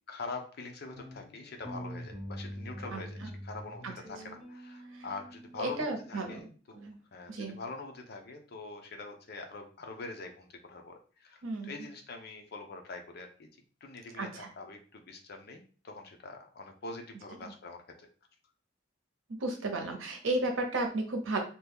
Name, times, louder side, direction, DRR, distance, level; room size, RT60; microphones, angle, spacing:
voice 1, 0.1-6.8 7.1-13.5 13.8-18.1, left 3 dB, 55° left, 4 dB, 0.6 m, -44 dB
sound 1, 0.9-6.4, equal, 20° right, 1.1 m, -45 dB
voice 2, 2.9-3.3 3.8-3.9 4.9-5.0 5.6-6.5 6.7-7.0 7.3-7.6 11.4-11.7 14.2-14.5 19.3-21.4, right 2 dB, 90° right, 3 dB, 0.8 m, -34 dB
2.8 x 2.3 x 3.5 m, 0.40 s
head